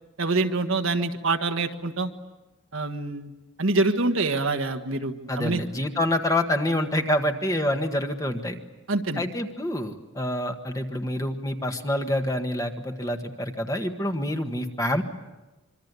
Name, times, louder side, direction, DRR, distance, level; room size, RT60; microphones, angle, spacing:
voice 1, 0.2-2.1 2.7-3.3 3.6-5.6 8.9-9.2, right 3 dB, 65° right, 6 dB, 1.6 m, -25 dB
voice 2, 5.3-8.6 9.2-15.0, left 1 dB, 15° left, 5 dB, 1.6 m, -27 dB
26.0 x 24.5 x 8.3 m, 1.1 s
head